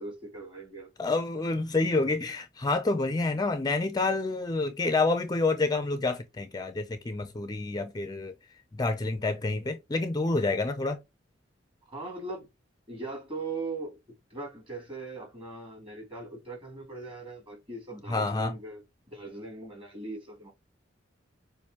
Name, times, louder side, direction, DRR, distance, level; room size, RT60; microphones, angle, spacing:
voice 1, 0.0-0.9 11.9-12.5 12.9-14.0 14.3-18.8 19.1-20.5, right 3 dB, 30° right, 2.8 m, -40 dB
voice 2, 1.0-8.3 8.7-11.0 18.1-18.5, left 3 dB, 20° left, 0.5 m, -28 dB
6.8 x 2.6 x 2.9 m
head